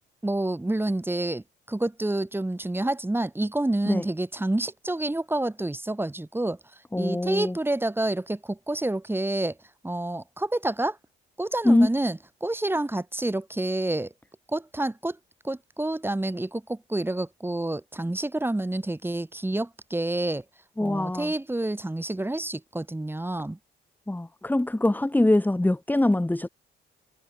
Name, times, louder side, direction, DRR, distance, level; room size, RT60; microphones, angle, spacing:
voice 1, 0.2-6.6 7.0-9.6 9.8-11.0 11.4-14.1 14.5-15.2 15.4-20.4 20.8-23.6, right 1 dB, 10° right, 4.0 m, -28 dB
voice 2, 6.9-7.6 11.6-11.9 20.8-21.3 24.1-26.5, left 1 dB, 10° left, 1.9 m, -23 dB
cardioid pair, 90°, 20 cm